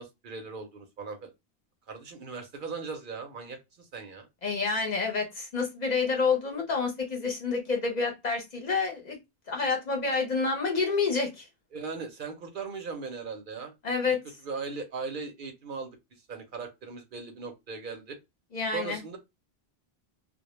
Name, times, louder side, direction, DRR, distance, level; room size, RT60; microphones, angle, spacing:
voice 1, 0.0-1.3 1.9-4.3 11.7-13.7 14.1-14.2 14.4-16.0 16.3-18.2 18.7-19.2, right 4 dB, 60° right, 0.7 m, -38 dB
voice 2, 4.4-9.2 9.5-11.5 13.8-14.2 18.5-19.0, left 4 dB, 50° left, 0.7 m, -28 dB
2.1 x 2.0 x 2.9 m
omnidirectional pair, 1.0 m